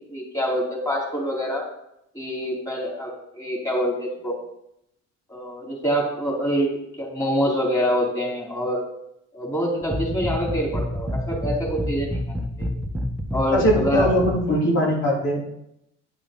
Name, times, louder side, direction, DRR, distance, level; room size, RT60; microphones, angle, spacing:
voice 1, 0.1-1.7 2.1-4.4 5.3-8.8 9.3-12.7 13.3-14.1, equal, 10° left, -3 dB, 3.8 m, -26 dB
sound 1, 9.8-14.5, left 1 dB, 5° right, 1.1 m, -28 dB
voice 2, 13.5-15.4, equal, 65° left, -4 dB, 3.1 m, -21 dB
9.9 x 6.1 x 5.3 m, 0.78 s
cardioid pair, 90°, 30 cm